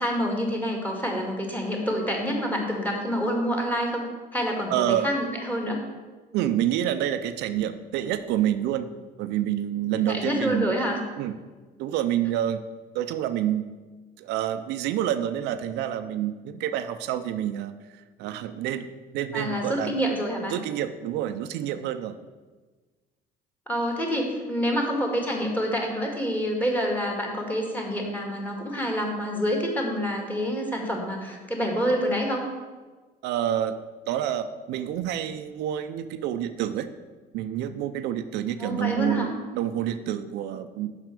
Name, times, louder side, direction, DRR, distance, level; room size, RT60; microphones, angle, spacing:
voice 1, 0.0-4.0 4.3-5.8 10.1-11.0 19.3-20.5 23.7-32.5 38.6-39.3, equal, 10° left, 1 dB, 2.0 m, -27 dB
voice 2, 4.7-5.1 6.3-8.9 9.2-10.7 11.2-11.4 11.8-12.6 12.9-13.6 14.2-18.9 19.1-19.9 20.5-22.2 33.2-33.8 34.1-36.9 37.3-40.9, right 11 dB, 85° right, 9 dB, 0.5 m, -28 dB
6.1 x 5.8 x 6.7 m, 1.3 s
cardioid pair, 110°, 17 cm